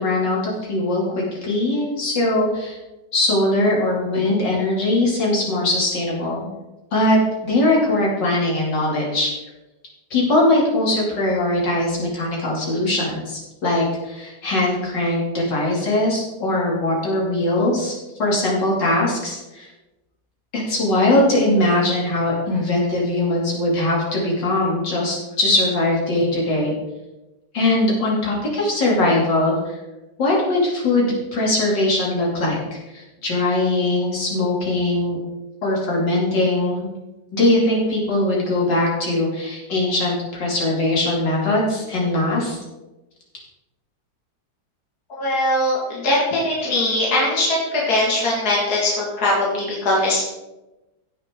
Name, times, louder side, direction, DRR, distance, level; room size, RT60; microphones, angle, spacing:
voice 1, 0.0-2.8 3.1-6.5 6.9-9.3 10.1-17.9 18.2-19.7 20.5-26.7 27.5-29.8 30.2-35.2 35.6-36.9 37.3-42.6, left 1 dB, 85° left, -4 dB, 3.3 m, -21 dB
voice 2, 45.1-50.2, left 1 dB, 60° left, -4 dB, 2.6 m, -21 dB
16.0 x 6.5 x 3.8 m, 1.0 s
omnidirectional pair, 1.9 m